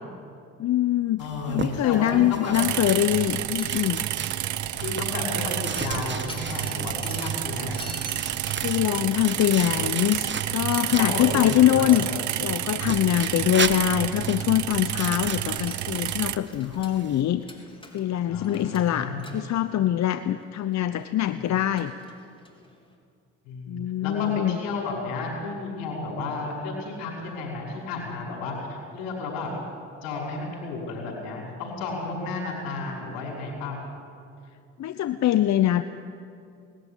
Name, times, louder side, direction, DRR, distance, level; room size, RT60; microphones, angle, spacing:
voice 1, 0.6-4.0 8.6-12.1 12.4-17.4 17.9-21.9 23.7-24.6 34.8-35.8, left 12 dB, 60° left, 11 dB, 0.8 m, -23 dB
voice 2, 1.2-2.5 4.8-7.9 11.0-12.1 18.3-19.3 21.3-21.4 23.4-29.5 30.0-33.8, left 3 dB, 85° left, -2 dB, 5.5 m, -32 dB
sound 1, 1.2-11.8 12.8-17.2, right 5 dB, 35° right, 1.4 m, -37 dB
sound 2, 2.6-16.4, right 12 dB, 60° right, 0.8 m, -30 dB
Mechanisms, 3.3-22.9, left 1 dB, 15° left, 3.8 m, -48 dB
19.5 x 13.5 x 10.0 m, 2.4 s
supercardioid pair, 60°, 32 cm